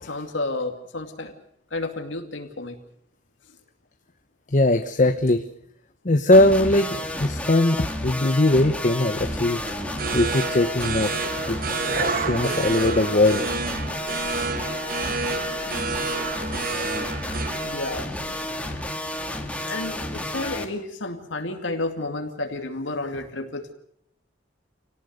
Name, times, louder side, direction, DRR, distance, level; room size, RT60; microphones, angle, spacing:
voice 1, 0.0-1.3 1.7-2.8 17.6-18.1 19.6-23.7, left 2 dB, 80° left, 4 dB, 2.5 m, -31 dB
voice 2, 4.5-5.4 6.0-9.6 10.1-11.1 11.5-11.6 12.0-13.5, left 1 dB, 40° left, 7 dB, 1.0 m, -20 dB
sound 1, 6.3-20.6, left 1 dB, 5° left, 2.2 m, -31 dB
sound 2, 9.3-18.9, right 4 dB, 50° right, 1.3 m, -30 dB
27.0 x 18.0 x 6.6 m, 0.70 s
head